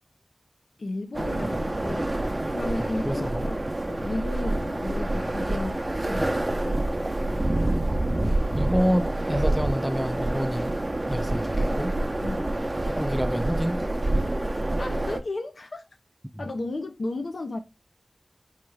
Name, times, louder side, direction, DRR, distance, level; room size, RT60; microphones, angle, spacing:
voice 1, 0.8-6.8 12.2-12.5 14.8-15.8 16.4-17.6, left 2 dB, 80° left, 0.6 m, -34 dB
sound 1, 1.1-15.2, right 1 dB, 30° right, 0.7 m, -27 dB
voice 2, 2.8-3.5 8.6-10.8 11.1-11.9 13.0-14.1 16.3-16.5, equal, 5° right, 0.4 m, -28 dB
4.8 x 3.2 x 3.3 m
wide cardioid pair, 65°, 0 cm